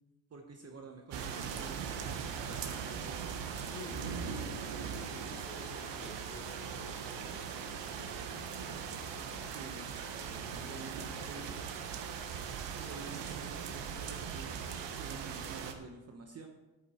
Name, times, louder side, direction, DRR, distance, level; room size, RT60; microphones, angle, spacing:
voice 1, 0.3-3.2 9.4-9.9 10.7-11.5 12.8-16.5, right 4 dB, 30° right, 3 dB, 1.0 m, -49 dB
sound 1, 1.1-15.7, right 7 dB, 60° right, 1.3 m, -40 dB
voice 2, 3.6-9.5 10.2-11.6, left 3 dB, 25° left, -2 dB, 3.1 m, -52 dB
12.5 x 8.5 x 4.3 m, 1.1 s
cardioid pair, 135°, 49 cm